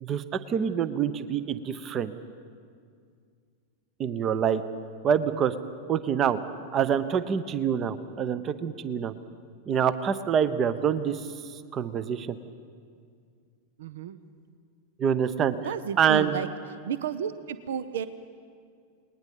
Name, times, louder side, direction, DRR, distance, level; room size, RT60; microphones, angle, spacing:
voice 1, 0.0-2.1 4.0-4.6 5.0-5.5 5.9-6.4 6.7-9.1 9.7-11.3 11.5-12.4 15.0-15.6 16.0-16.4, right 8 dB, 30° right, 14 dB, 0.9 m, -26 dB
voice 2, 13.8-14.2 15.6-16.5 16.9-18.1, right 8 dB, 60° right, 14 dB, 0.7 m, -32 dB
29.0 x 20.0 x 5.4 m, 2.1 s
figure-of-eight pair, 90°, 0 cm